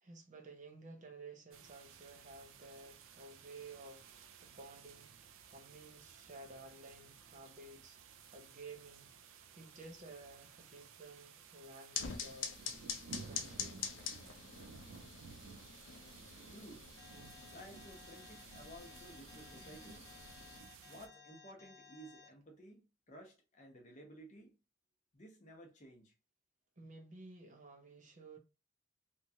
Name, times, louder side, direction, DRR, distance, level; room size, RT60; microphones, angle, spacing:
voice 1, 0.0-8.0 8.3-12.6 13.2-13.8 26.8-28.4, right 3 dB, 40° right, 0.6 m, -54 dB
sound 1, 1.5-21.1, right 6 dB, 85° right, 0.4 m, -56 dB
sound 2, 11.9-20.6, left 6 dB, 75° left, 0.5 m, -46 dB
voice 2, 16.5-16.9 17.5-20.1 20.8-24.6 25.1-26.1, right 1 dB, 35° left, 0.8 m, -55 dB
Alarm, 17.0-22.3, left 5 dB, 15° left, 0.4 m, -59 dB
2.9 x 2.4 x 2.7 m
head